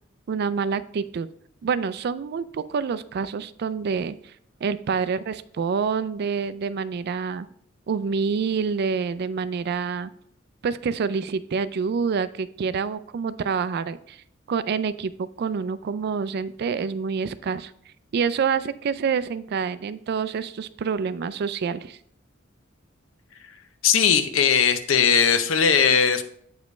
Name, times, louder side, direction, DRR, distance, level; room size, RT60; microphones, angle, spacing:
voice 1, 0.3-1.3 1.6-4.3 4.6-7.5 7.9-10.1 10.6-17.7 18.1-22.0, right 5 dB, 55° right, 15 dB, 0.3 m, -27 dB
voice 2, 23.8-26.2, left 7 dB, 85° left, 10 dB, 0.6 m, -19 dB
8.0 x 5.1 x 3.2 m, 0.66 s
head